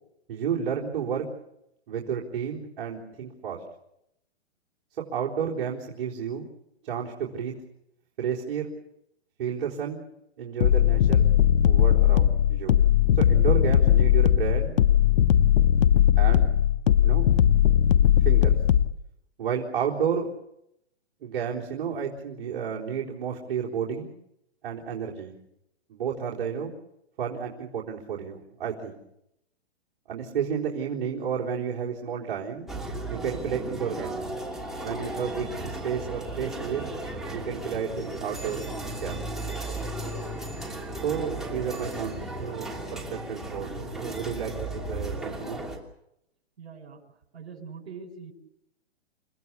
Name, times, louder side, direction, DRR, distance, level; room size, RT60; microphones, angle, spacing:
voice 1, 0.3-1.3 1.9-3.6 5.1-6.5 6.8-7.5 8.2-8.7 9.4-10.0 10.4-11.3 11.6-12.7 13.2-14.8 16.2-16.4 17.0-17.2 18.2-18.6 19.4-20.3 21.2-24.1 24.6-25.4 25.9-26.7 27.2-29.0 30.1-32.7 33.1-34.2 34.8-36.9 37.3-38.6 38.9-39.2 41.0-45.6, right 7 dB, 50° right, -5 dB, 4.0 m, -31 dB
sound 1, 10.6-18.9, left 10 dB, 55° left, 0.9 m, -19 dB
sound 2, 32.7-45.8, right 1 dB, ahead, 2.9 m, -35 dB
voice 2, 46.6-47.0 47.3-48.3, right 5 dB, 70° right, 2 dB, 7.0 m, -42 dB
29.5 x 17.5 x 7.1 m, 0.83 s
hypercardioid pair, 155°, 33 cm